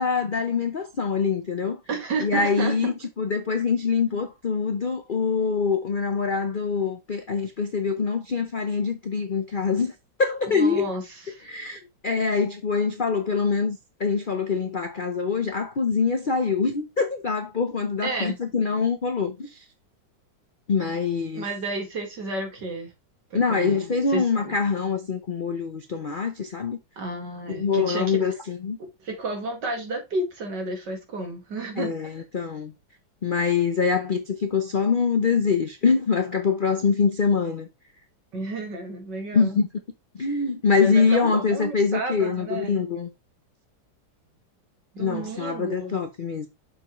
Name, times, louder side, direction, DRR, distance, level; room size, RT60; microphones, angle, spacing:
voice 1, 0.0-1.8 2.2-9.9 10.2-10.9 11.5-19.6 20.7-21.4 23.3-26.8 27.5-28.8 31.8-32.7 33.2-37.7 39.3-39.7 40.2-43.1 45.0-46.5, left 5 dB, 65° left, 0.5 m, -24 dB
voice 2, 1.9-2.7 10.5-11.5 18.0-18.4 21.3-22.9 23.3-23.8 24.1-24.6 27.0-28.2 28.8-31.9 38.3-39.6 40.8-42.8 44.9-46.0, right 2 dB, 65° right, 2.7 m, -31 dB
6.9 x 5.7 x 3.1 m
omnidirectional pair, 2.1 m